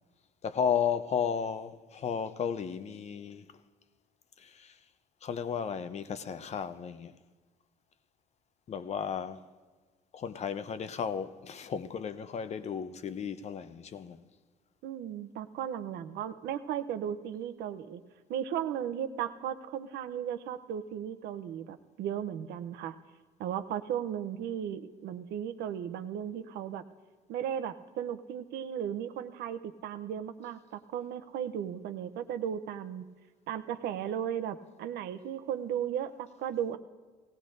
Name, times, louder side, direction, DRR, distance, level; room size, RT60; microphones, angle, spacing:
voice 1, 0.4-3.5 4.4-4.8 5.2-7.1 8.7-9.4 10.1-14.3, left 7 dB, 40° left, 0.6 m, -34 dB
voice 2, 14.8-18.0 18.3-23.0 23.4-26.8 27.3-33.0 33.5-36.8, right 9 dB, 80° right, 0.7 m, -36 dB
18.5 x 16.0 x 2.6 m
cardioid pair, 110°, 17 cm